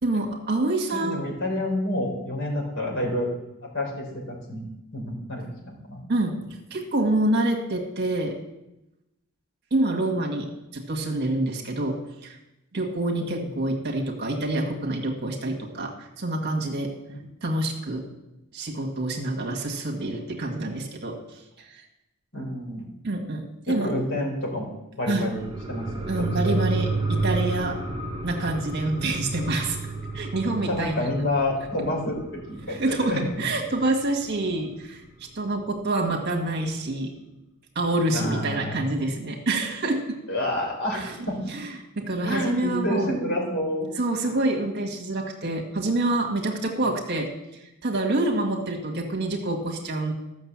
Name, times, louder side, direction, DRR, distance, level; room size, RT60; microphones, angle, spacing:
voice 1, 0.0-1.2 6.1-6.4 6.7-8.4 9.7-10.5 10.7-12.4 12.7-16.9 17.4-18.0 18.5-21.2 21.7-21.8 23.0-23.9 25.1-25.3 26.1-27.8 28.2-29.8 30.1-31.1 32.7-35.0 35.3-37.1 37.7-40.2 40.9-43.1 44.0-50.1, right 2 dB, 50° right, 2 dB, 1.7 m, -27 dB
voice 2, 0.9-3.3 3.7-4.6 4.9-6.0 13.2-13.5 17.1-17.2 22.3-22.8 23.7-25.4 25.7-26.1 26.4-26.5 30.7-33.2 38.1-38.8 40.3-41.4 42.2-43.9, left 1 dB, 55° left, 0 dB, 3.9 m, -29 dB
sound 1, 25.3-34.4 34.8-34.9, right 3 dB, 25° right, 1.3 m, -31 dB
13.5 x 6.5 x 7.4 m, 0.93 s
head